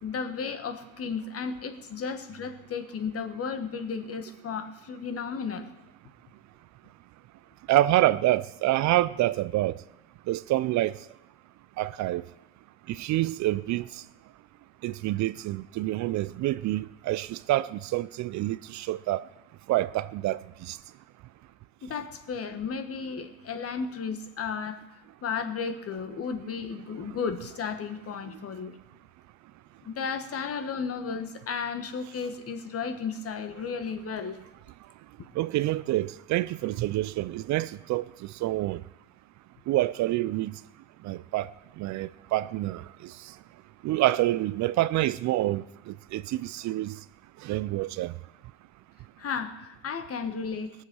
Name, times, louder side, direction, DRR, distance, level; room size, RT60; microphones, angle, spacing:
voice 1, 0.0-5.7 21.8-24.8 25.2-28.7 29.8-34.4 49.2-50.7, left 5 dB, 40° left, 1.6 m, -34 dB
voice 2, 7.7-9.7 10.3-10.9 11.8-12.2 12.9-13.8 14.8-19.2 19.7-20.4 20.7-20.8 35.4-38.0 38.4-38.8 39.7-40.5 41.0-41.5 41.8-42.8 43.8-45.6 46.1-47.0 47.4-48.1, right 16 dB, 50° right, 0.5 m, -27 dB
18.0 x 7.5 x 6.2 m
supercardioid pair, 90°, 36 cm